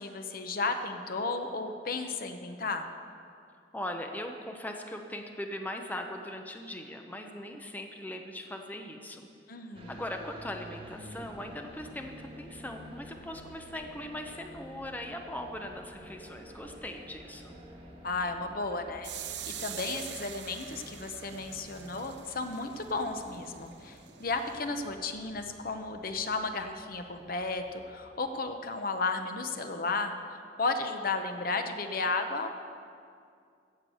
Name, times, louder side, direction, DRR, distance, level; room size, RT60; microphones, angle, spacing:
voice 1, 0.0-2.9 9.5-10.0 18.0-19.1 19.5-30.1 30.6-32.5, left 3 dB, 55° left, 6 dB, 0.9 m, -33 dB
voice 2, 3.7-9.3 9.9-17.6, left 1 dB, 10° left, 4 dB, 0.8 m, -40 dB
sound 1, 9.7-28.0, equal, 30° right, 1.7 m, -51 dB
sound 2, 19.0-24.7, right 10 dB, 85° right, 0.7 m, -44 dB
16.0 x 6.0 x 7.8 m, 2.4 s
head